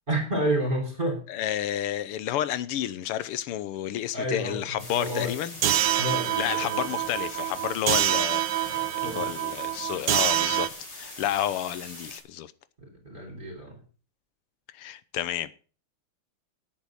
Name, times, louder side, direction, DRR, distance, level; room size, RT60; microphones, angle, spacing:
voice 1, 0.1-1.2 4.1-4.6 4.9-5.3 5.8-6.8 8.7-9.3 12.8-13.8, right 1 dB, 20° right, 4.1 m, -30 dB
voice 2, 1.3-5.6 6.4-12.5 14.7-15.6, left 11 dB, 90° left, 1.7 m, -31 dB
sound 1, 4.8-12.2, left 1 dB, 50° left, 4.2 m, -43 dB
sound 2, 5.6-10.7, right 13 dB, 65° right, 1.3 m, -26 dB
11.0 x 8.6 x 6.3 m
omnidirectional pair, 2.4 m